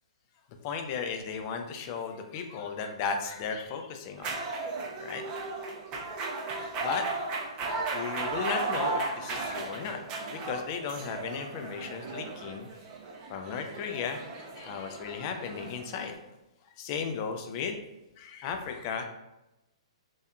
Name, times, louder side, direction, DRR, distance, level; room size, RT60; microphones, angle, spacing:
voice 1, 0.6-4.3 5.0-5.2 6.8-7.1 7.9-10.0 10.3-12.7 13.3-16.1 16.8-17.8 18.2-19.0, left 6 dB, 35° left, 5 dB, 0.3 m, -35 dB
sound 1, 4.2-16.2, right 3 dB, 30° right, 0.4 m, -35 dB
2.6 x 2.2 x 2.2 m, 0.96 s
figure-of-eight pair, 120°, 3 cm